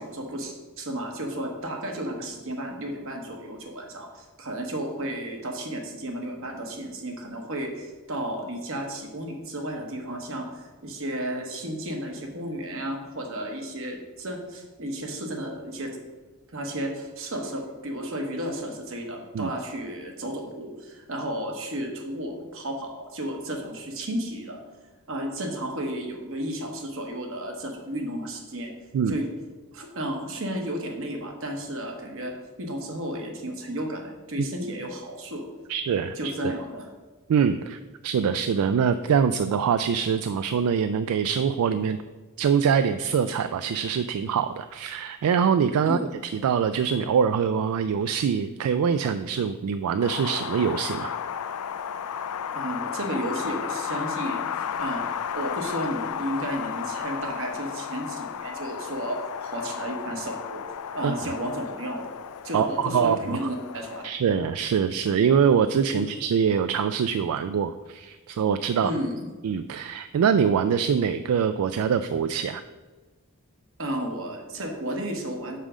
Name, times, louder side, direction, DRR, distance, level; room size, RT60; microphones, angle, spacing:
voice 1, 0.0-15.9 16.5-24.6 25.1-28.7 29.1-29.3 29.7-32.3 32.6-35.4 36.2-36.9 45.8-46.0 52.5-54.5 54.8-60.6 60.9-62.1 62.4-64.0 65.9-66.1 68.8-69.1 73.8-75.6, right 1 dB, 65° right, 2 dB, 1.2 m, -33 dB
voice 2, 35.7-36.3 37.3-42.0 42.4-51.1 61.0-61.2 62.5-63.4 64.0-68.9 69.4-72.6, right 7 dB, 80° right, 11 dB, 0.3 m, -24 dB
Wind, 50.0-64.1, left 8 dB, 85° left, 0.4 m, -33 dB
5.5 x 4.9 x 6.2 m, 1.3 s
head